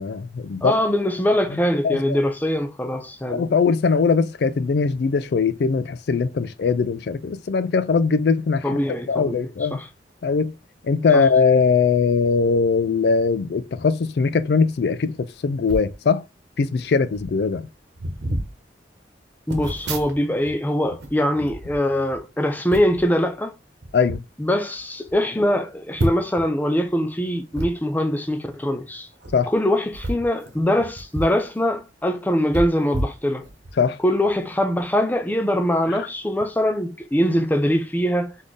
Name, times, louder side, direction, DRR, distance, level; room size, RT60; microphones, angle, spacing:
voice 1, 0.0-0.7 1.8-2.2 3.3-8.7 9.1-9.8 10.2-10.5 10.8-16.2 16.6-17.7 23.9-24.2 29.3-29.5 33.8-34.0 35.9-36.0, left 5 dB, 65° left, 0.4 m, -21 dB
voice 2, 0.6-3.5 8.6-9.4 9.7-9.8 11.1-11.2 19.5-23.6 24.4-29.1 29.5-33.4 34.0-38.4, equal, 10° left, 0.6 m, -22 dB
sound 1, 15.6-15.9 16.8-16.9 17.1-17.4 17.9-18.5 19.5-20.5 20.8-22.2 22.7-23.0 23.8-24.2 24.7-24.8 25.1-25.2 25.9-26.4 27.5-27.7 29.1-29.3 29.9-31.4 31.7-31.8 32.5-33.7 34.2-34.4, right 1 dB, 70° right, 1.1 m, -30 dB
4.2 x 3.5 x 3.3 m
head